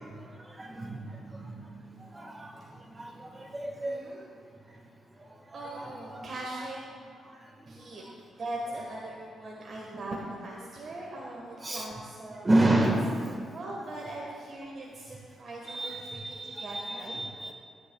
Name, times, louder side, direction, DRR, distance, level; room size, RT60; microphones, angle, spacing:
voice 1, 0.6-1.0 1.3-1.5 2.1-2.5 3.0-4.0 5.5-6.3 11.6-11.9 12.4-13.2 14.2-14.3 15.7-17.5, right 1 dB, 25° right, 2 dB, 1.6 m, -29 dB
voice 2, 3.8-4.2 5.5-6.8 7.7-8.0 8.4-12.5 13.3-17.2, right 1 dB, 50° right, -3 dB, 1.5 m, -40 dB
16.5 x 10.0 x 2.3 m, 2.2 s
cardioid pair, 75°, 0 cm